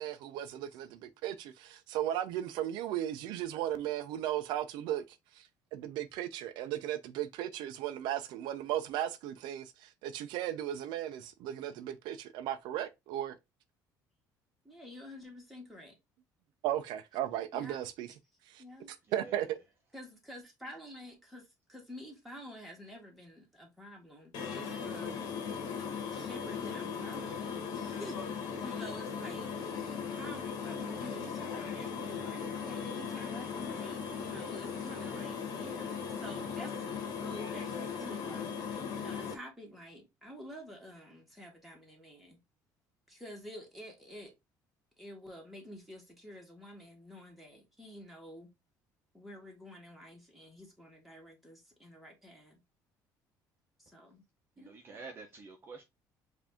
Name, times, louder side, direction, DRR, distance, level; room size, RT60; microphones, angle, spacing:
voice 1, 0.0-5.0 5.4-13.4 16.6-18.1 18.5-18.6 19.1-19.6, right 12 dB, 85° right, 0.5 m, -36 dB
voice 2, 14.7-16.0 17.5-17.8 18.6-18.9 19.9-25.1 26.1-28.3 28.6-36.9 37.2-38.5 39.0-42.4 43.1-44.3 45.0-48.5 49.1-52.6 53.8-54.2 54.6-54.8, equal, ahead, 1.6 m, -49 dB
sound 1, 24.3-39.3, left 6 dB, 60° left, 1.4 m, -38 dB
voice 3, 54.6-55.8, right 4 dB, 30° right, 0.7 m, -48 dB
4.9 x 2.7 x 3.5 m
cardioid pair, 140°, 7 cm